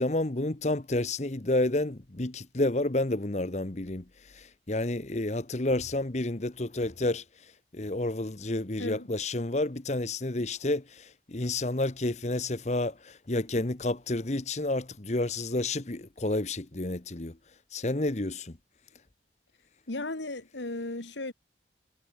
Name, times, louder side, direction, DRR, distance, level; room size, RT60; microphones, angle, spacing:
voice 1, 0.0-17.4 17.7-18.6, left 2 dB, 40° left, 1.1 m, -30 dB
voice 2, 19.9-21.3, left 2 dB, 90° left, 2.2 m, -35 dB
head